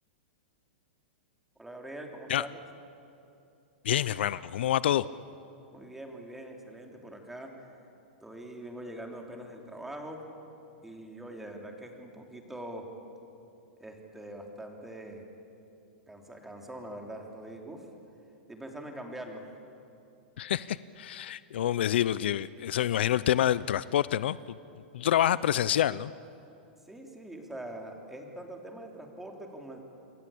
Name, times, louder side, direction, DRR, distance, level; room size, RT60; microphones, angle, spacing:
voice 1, 1.6-2.6 5.7-7.5 8.2-10.2 10.8-12.9 13.8-15.2 16.1-17.9 18.5-19.4 26.9-29.9, right 1 dB, 5° right, 2 dB, 3.3 m, -43 dB
voice 2, 3.8-5.1 20.4-24.6 24.9-26.1, left 11 dB, 75° left, 18 dB, 0.6 m, -27 dB
28.0 x 23.0 x 8.6 m, 2.7 s
hypercardioid pair, 145°, 6 cm